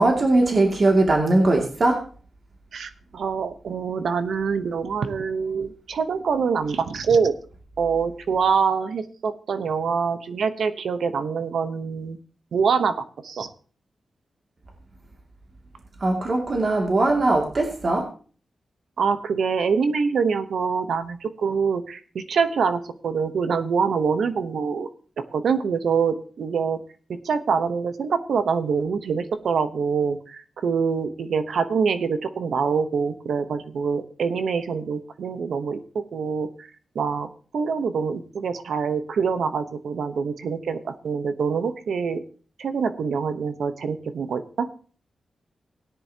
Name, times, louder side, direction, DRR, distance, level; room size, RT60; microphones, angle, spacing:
voice 1, 0.0-2.1 16.0-18.0, right 2 dB, 50° right, 1 dB, 2.4 m, -20 dB
voice 2, 2.7-7.3 7.8-12.2 12.5-12.9 13.2-13.5 19.0-24.9 25.3-26.8 27.1-36.7 36.9-37.3 37.5-42.2 42.6-44.7, right 5 dB, 90° right, 10 dB, 0.9 m, -25 dB
17.5 x 10.0 x 2.9 m, 0.41 s
wide cardioid pair, 90°, 0 cm